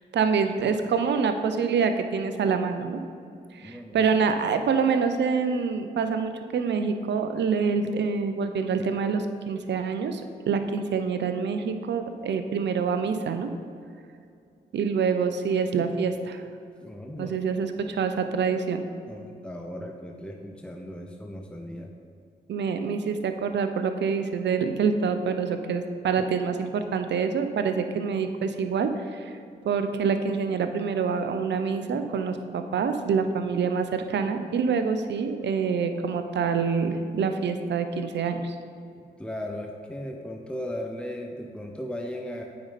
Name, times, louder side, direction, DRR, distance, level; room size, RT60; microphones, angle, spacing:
voice 1, 0.1-3.0 3.5-10.2 10.5-13.5 14.7-16.4 17.2-18.8 22.5-29.4 29.6-38.6, right 5 dB, 70° right, 8 dB, 0.6 m, -26 dB
voice 2, 3.6-4.0 16.8-17.4 19.0-21.9 26.2-26.3 39.2-42.4, left 1 dB, 5° left, 2 dB, 0.9 m, -37 dB
8.6 x 5.2 x 4.2 m, 2.4 s
supercardioid pair, 40°, 19 cm